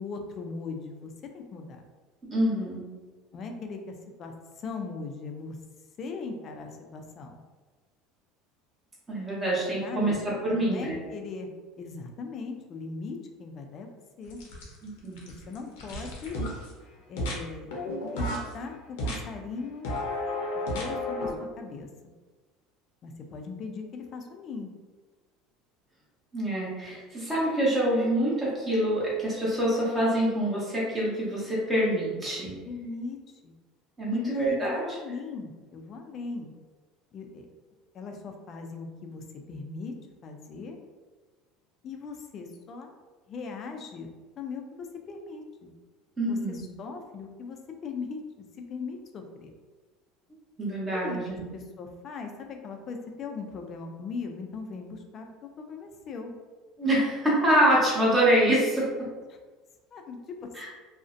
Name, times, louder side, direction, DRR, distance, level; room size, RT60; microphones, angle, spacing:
voice 1, 0.0-1.8 3.3-5.6 6.0-7.4 9.8-10.2 10.5-11.5 11.8-13.9 14.2-14.4 15.5-16.4 17.1-17.8 18.1-19.9 20.5-22.1 23.0-24.7 32.1-32.3 32.7-33.5 34.1-36.5 37.1-37.5 37.9-39.9 40.2-40.8 41.8-42.9 43.3-44.1 44.4-45.7 46.2-48.2 48.6-49.5 50.9-55.3 55.6-56.3 59.3-59.4 59.9-60.5, left 4 dB, 40° left, 4 dB, 0.3 m, -39 dB
voice 2, 2.2-2.9 9.1-11.0 14.8-15.3 26.3-32.5 34.0-35.0 46.2-46.6 50.6-51.4 56.8-58.9 60.6-60.7, right 1 dB, 15° right, -7 dB, 0.8 m, -26 dB
sound 1, 14.3-14.9 15.2-16.7 17.2-17.4 17.7-18.5 19.0-19.2 19.8-21.3, left 1 dB, 85° left, 0.6 m, -32 dB
2.4 x 2.0 x 2.5 m, 1.3 s
supercardioid pair, 130°, 0 cm